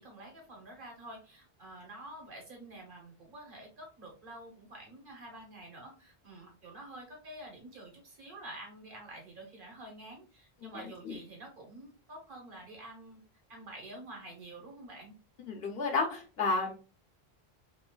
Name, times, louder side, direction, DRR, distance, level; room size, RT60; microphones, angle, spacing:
voice 1, 0.0-13.2 13.5-15.1, right 1 dB, 55° right, 0 dB, 1.3 m, -48 dB
voice 2, 15.5-16.7, left 3 dB, 70° left, 2 dB, 0.9 m, -31 dB
3.1 x 3.0 x 2.2 m, 0.34 s
omnidirectional pair, 1.0 m